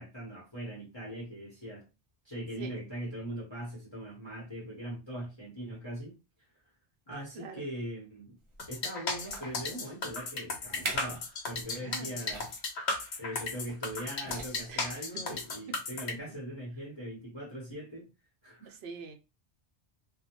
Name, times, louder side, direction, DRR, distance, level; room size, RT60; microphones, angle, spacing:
voice 1, 0.0-1.9 2.2-6.2 7.1-8.4 8.7-12.6 13.2-18.1 18.4-18.8, right 1 dB, 25° left, 0.9 m, -41 dB
sound 1, 8.4-8.6 9.2-9.6 10.3-10.4 10.7-11.2 11.5-11.7 12.2-12.6 13.7-13.9 14.2-14.8 15.5-15.6, right 3 dB, 35° right, 0.6 m, -41 dB
sound 2, 8.6-16.1, left 3 dB, 75° left, 0.9 m, -35 dB
voice 2, 11.7-12.2 14.7-15.0 16.1-16.2 18.7-19.1, right 5 dB, 70° right, 0.8 m, -44 dB
2.3 x 2.1 x 2.9 m
omnidirectional pair, 1.1 m